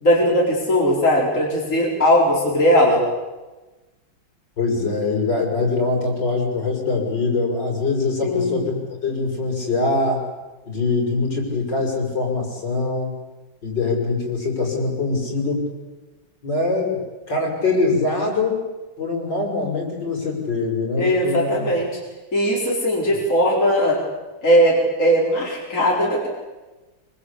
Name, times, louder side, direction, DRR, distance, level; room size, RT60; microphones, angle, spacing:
voice 1, 0.0-3.0 8.2-8.6 21.0-21.9 22.3-24.0 24.4-26.3, equal, 40° left, -3 dB, 4.8 m, -18 dB
voice 2, 4.6-10.2 10.7-13.1 13.6-15.7 16.4-17.0 17.3-18.6 19.0-21.7, left 3 dB, 60° left, 0 dB, 6.9 m, -23 dB
25.0 x 25.0 x 8.5 m, 1.2 s
omnidirectional pair, 2.2 m